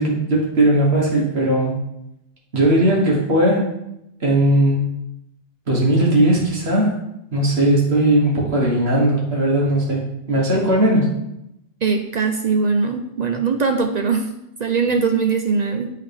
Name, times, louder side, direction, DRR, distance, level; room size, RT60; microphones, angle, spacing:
voice 1, 0.0-1.7 2.5-3.7 4.2-4.9 5.7-7.0 7.3-11.1, right 1 dB, 70° right, -2 dB, 1.8 m, -18 dB
voice 2, 11.8-14.3 14.6-15.9, right 5 dB, 50° right, 5 dB, 0.5 m, -21 dB
8.3 x 3.7 x 3.5 m, 0.83 s
omnidirectional pair, 1.1 m